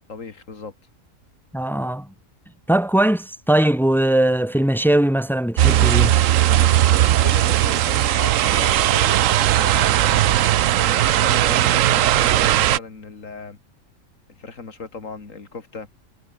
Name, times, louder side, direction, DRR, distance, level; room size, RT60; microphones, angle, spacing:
voice 1, 0.1-0.7 6.4-10.4 10.8-13.6 14.4-15.9, left 4 dB, 80° left, 2.9 m, -36 dB
voice 2, 1.5-2.1 2.7-6.2, right 1 dB, ahead, 0.8 m, -19 dB
sound 1, 5.6-12.8, right 13 dB, 80° right, 1.0 m, -17 dB
omnidirectional pair, 1.3 m